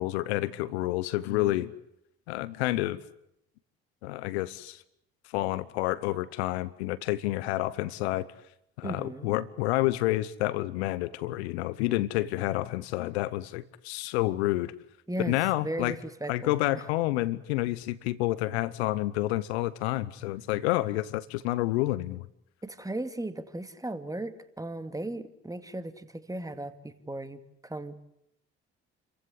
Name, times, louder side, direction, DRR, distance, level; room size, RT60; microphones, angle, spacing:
voice 1, 0.0-1.7 2.3-3.0 4.0-4.8 5.3-8.3 8.8-14.7 15.2-16.0 16.3-22.2, left 17 dB, 80° left, 18 dB, 0.9 m, -29 dB
voice 2, 8.8-9.3 15.1-16.9 22.6-28.0, right 1 dB, 10° right, 10 dB, 2.4 m, -37 dB
29.0 x 15.0 x 9.7 m, 0.78 s
hypercardioid pair, 55°, 32 cm